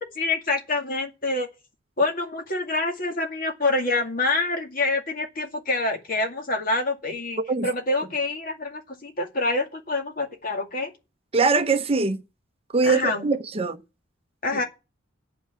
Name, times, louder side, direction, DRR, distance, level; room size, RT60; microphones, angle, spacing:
voice 1, 0.2-1.5 2.0-10.9 12.8-13.2 14.4-14.6, left 2 dB, 45° left, 2.2 m, -26 dB
voice 2, 11.3-12.2 12.7-13.8, right 4 dB, 30° right, 0.7 m, -22 dB
9.2 x 6.0 x 8.3 m
head